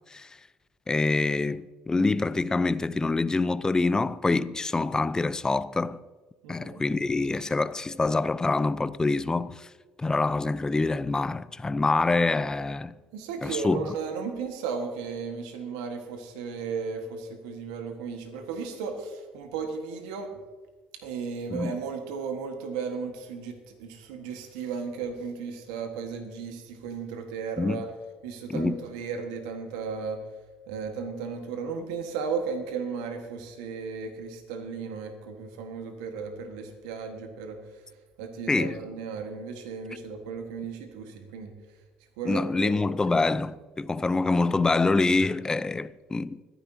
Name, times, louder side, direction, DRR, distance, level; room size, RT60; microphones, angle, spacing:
voice 1, 0.9-6.0 6.5-9.7 10.0-12.9 13.4-13.9 21.5-21.7 27.6-27.8 28.5-28.8 38.5-38.8 42.2-46.4, left 3 dB, 20° left, 0.6 m, -26 dB
voice 2, 6.4-6.8 13.1-20.3 21.0-27.9 28.2-30.2 30.7-37.6 38.2-41.5 42.2-42.7, right 5 dB, 85° right, 1.5 m, -35 dB
25.5 x 10.0 x 2.8 m
hypercardioid pair, 70°, 3 cm